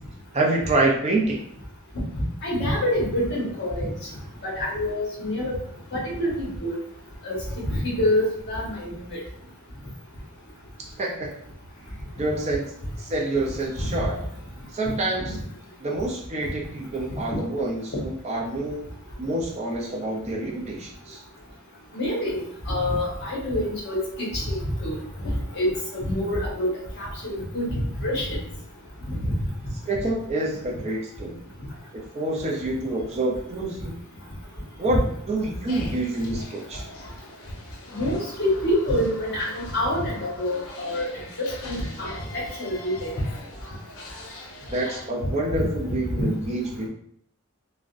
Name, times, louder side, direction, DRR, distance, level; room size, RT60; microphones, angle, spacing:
voice 1, 0.3-1.4 10.8-11.3 12.2-12.7 13.0-14.2 14.7-15.4 15.8-18.9 19.2-21.2 29.9-31.4 31.9-34.0 34.8-36.8 44.7-46.9, right 2 dB, 30° right, -1 dB, 0.5 m, -27 dB
voice 2, 2.1-3.9 4.4-5.5 5.9-6.8 7.2-7.4 7.8-9.2 13.8-14.1 15.3-15.4 21.9-25.0 25.5-26.7 27.0-28.4 29.1-29.3 37.9-41.0 41.4-43.1 45.5-45.6, left 1 dB, 55° left, -3 dB, 1.1 m, -26 dB
sound 1, 35.7-45.0, left 2 dB, 85° left, 0.6 m, -43 dB
3.6 x 2.1 x 2.4 m, 0.67 s
head